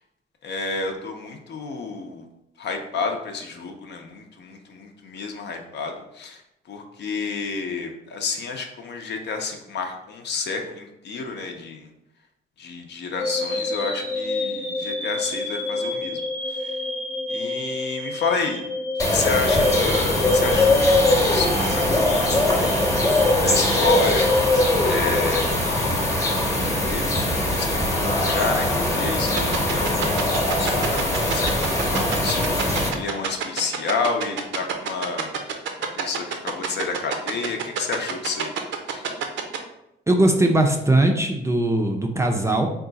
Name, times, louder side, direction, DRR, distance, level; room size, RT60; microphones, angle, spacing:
voice 1, 0.4-2.2 2.6-6.4 6.7-11.9 12.6-16.2 16.5-16.8 17.3-18.6 19.0-22.7 23.4-24.6 24.8-25.6 26.2-35.3 35.8-38.5 38.9-39.1, left 4 dB, 60° left, 4 dB, 0.7 m, -30 dB
sound 1, 13.2-25.3, left 2 dB, 85° left, 1.1 m, -30 dB
sound 2, 19.0-32.9, left 1 dB, 15° left, 0.9 m, -21 dB
sound 3, 29.4-39.6, right 9 dB, 70° right, 0.6 m, -26 dB
voice 2, 40.1-42.7, right 1 dB, 15° right, 3 dB, 0.4 m, -20 dB
3.7 x 2.3 x 3.9 m, 0.85 s
cardioid pair, 90°, 20 cm